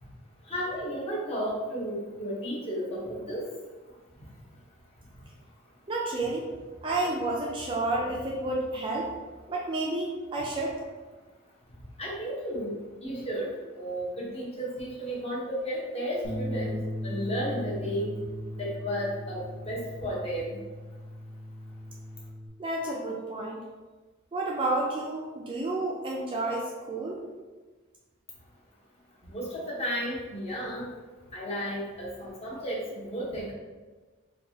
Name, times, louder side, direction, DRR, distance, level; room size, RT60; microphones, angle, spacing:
voice 1, 0.4-3.5 3.9-4.3 5.1-5.2 12.0-18.1 18.5-20.6 29.2-30.8 31.3-33.5, equal, 30° left, -5 dB, 1.0 m, -33 dB
voice 2, 5.9-6.5 6.8-9.1 9.5-10.8 22.6-23.6 24.3-27.2, right 2 dB, 25° right, -2 dB, 0.3 m, -30 dB
Bass guitar, 16.2-22.5, left 1 dB, 85° left, 0.9 m, -37 dB
4.5 x 2.3 x 2.8 m, 1.3 s
head